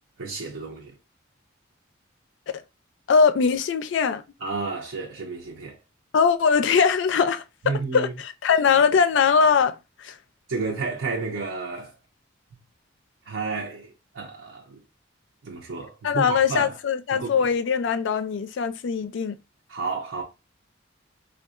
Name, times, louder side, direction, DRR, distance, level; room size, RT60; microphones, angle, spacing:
voice 1, 0.2-0.9 4.4-5.8 7.6-8.1 10.5-11.9 13.3-14.8 15.4-16.7 17.1-17.5 19.7-20.2, right 4 dB, 85° right, 0.6 m, -31 dB
voice 2, 3.1-4.2 6.1-10.2 16.0-19.4, left 6 dB, 70° left, 0.4 m, -21 dB
3.6 x 2.2 x 2.4 m
head